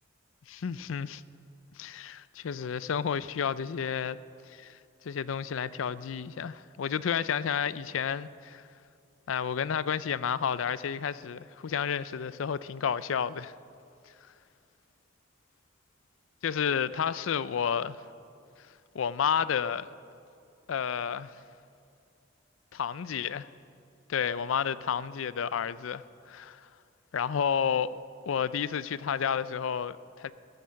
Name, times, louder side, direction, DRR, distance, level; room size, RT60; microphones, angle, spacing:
voice 1, 0.5-1.2 1.8-4.2 4.5-4.8 5.0-8.6 9.3-13.5 16.4-18.0 18.9-19.9 20.7-21.3 22.7-23.5 24.1-26.7 27.1-28.0 28.3-30.3, left 7 dB, 85° left, 0.4 m, -31 dB
14.5 x 14.0 x 5.8 m
head